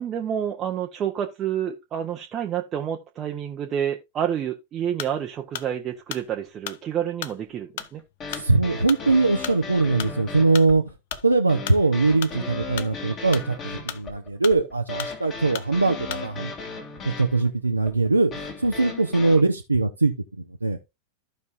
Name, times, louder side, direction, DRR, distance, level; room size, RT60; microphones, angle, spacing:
voice 1, 0.0-8.0, right 9 dB, 30° right, 0.8 m, -29 dB
sound 1, 4.9-5.2 5.5-10.7 11.1-12.4 12.7-14.2 14.4-15.2 15.5-15.7 16.1-16.3, left 11 dB, 55° left, 0.7 m, -36 dB
sound 2, 7.8-19.4, left 4 dB, 30° left, 2.5 m, -36 dB
voice 2, 8.3-10.8 11.2-16.5 17.0-20.8, right 3 dB, 80° right, 0.6 m, -22 dB
14.5 x 5.3 x 2.5 m
figure-of-eight pair, 90°, 0 cm